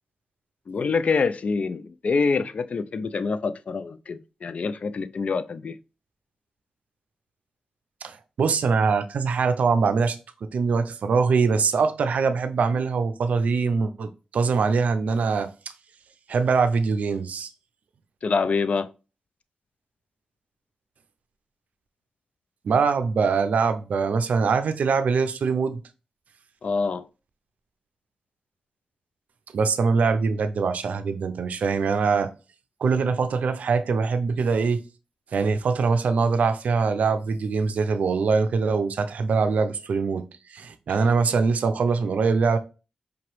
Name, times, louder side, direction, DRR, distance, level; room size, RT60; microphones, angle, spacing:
voice 1, 0.7-5.8 18.2-18.9 26.6-27.0, left 4 dB, 60° left, 0.3 m, -26 dB
voice 2, 8.0-10.2 10.5-15.5 16.3-17.5 22.6-25.8 29.5-32.3 32.8-34.8 35.3-40.2 40.5-42.6, right 5 dB, 85° right, 0.4 m, -23 dB
4.9 x 2.9 x 3.1 m
cardioid pair, 60°, 2 cm